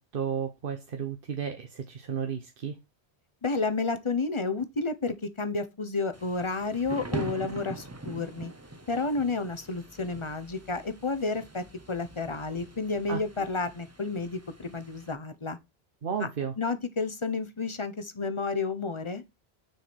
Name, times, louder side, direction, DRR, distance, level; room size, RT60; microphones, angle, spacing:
voice 1, 0.0-2.8 13.1-13.2 16.0-16.5, right 7 dB, 60° right, 1.0 m, -33 dB
voice 2, 3.4-8.5 8.9-15.6 16.2-16.3 16.6-19.2, left 3 dB, 30° left, 0.9 m, -31 dB
Thunder / Rain, 6.1-15.1, right 2 dB, 15° right, 0.7 m, -43 dB
6.5 x 4.8 x 4.3 m
omnidirectional pair, 1.1 m